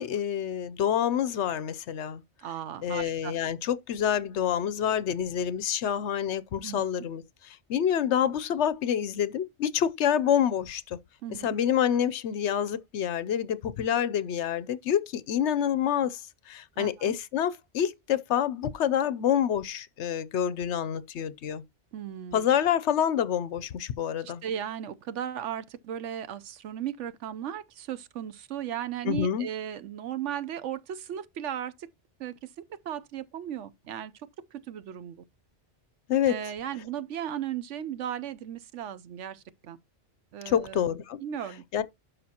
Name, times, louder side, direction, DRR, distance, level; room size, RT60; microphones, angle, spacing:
voice 1, 0.0-2.2 2.8-11.0 11.4-16.2 16.5-21.6 22.3-24.4 29.0-29.5 36.1-36.3 40.5-41.2 41.7-41.8, left 9 dB, 75° left, 0.9 m, -27 dB
voice 2, 2.4-3.3 6.6-6.8 11.2-11.5 16.8-17.2 21.9-22.5 24.2-31.9 32.2-34.1 34.5-35.2 36.3-39.8 40.3-40.8 41.2-41.6, right 10 dB, 85° right, 1.0 m, -36 dB
12.0 x 5.1 x 2.8 m
omnidirectional pair, 1.2 m